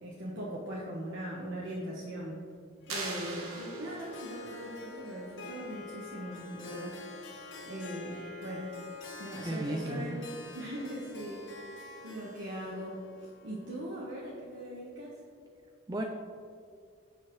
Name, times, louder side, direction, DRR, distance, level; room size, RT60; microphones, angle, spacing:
voice 1, 0.0-2.4 2.9-7.3 7.7-8.7 9.2-10.3 10.5-11.4 12.0-15.2, right 1 dB, 60° right, -5 dB, 1.3 m, -40 dB
Harp, 2.8-14.7, left 3 dB, 60° left, 1.5 m, -47 dB
sound 1, 2.9-4.4, right 4 dB, 80° right, 1.4 m, -40 dB
voice 2, 9.4-10.2 15.9-16.1, right 1 dB, 20° right, 2 dB, 0.5 m, -34 dB
17.0 x 5.6 x 3.2 m, 2.2 s
head